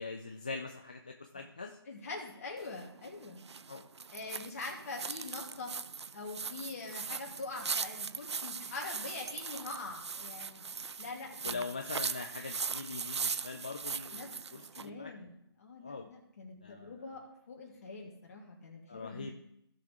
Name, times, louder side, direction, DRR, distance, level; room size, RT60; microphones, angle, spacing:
voice 1, 0.0-1.8 3.7-3.8 11.4-15.1 15.8-16.1 16.6-17.0 18.9-19.3, left 4 dB, 20° left, 3 dB, 0.3 m, -42 dB
voice 2, 1.9-3.4 4.1-5.7 6.1-10.6 11.0-11.6 14.1-14.3 14.7-19.3, left 3 dB, 35° left, -1 dB, 2.2 m, -44 dB
sound 1, 2.6-14.9, right 5 dB, 85° right, 0.4 m, -40 dB
16.0 x 5.7 x 3.6 m, 0.79 s
figure-of-eight pair, 165°, 14 cm